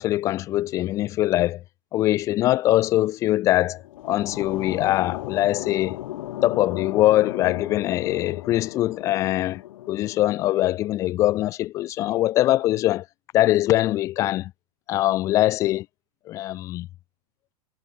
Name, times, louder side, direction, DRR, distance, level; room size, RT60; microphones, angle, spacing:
voice 1, 0.0-1.6 1.9-6.0 6.4-9.6 9.9-13.0 13.3-14.5 14.9-15.9 16.3-16.9, left 15 dB, 15° left, 0.5 m, -22 dB
sound 1, 3.5-10.7, left 14 dB, 55° left, 1.6 m, -36 dB
supercardioid pair, 175°, 20 cm